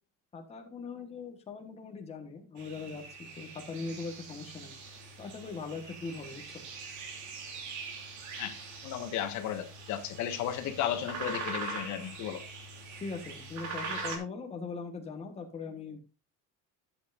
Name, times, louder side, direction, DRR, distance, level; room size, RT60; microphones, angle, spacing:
voice 1, 0.3-4.7 5.2-6.6 13.0-16.0, left 4 dB, 20° left, 1.3 m, -40 dB
sound 1, 2.6-14.2, right 3 dB, 60° right, 2.9 m, -42 dB
voice 2, 8.8-12.4, left 10 dB, 60° left, 1.5 m, -34 dB
12.0 x 8.2 x 2.5 m
cardioid pair, 165°, 33 cm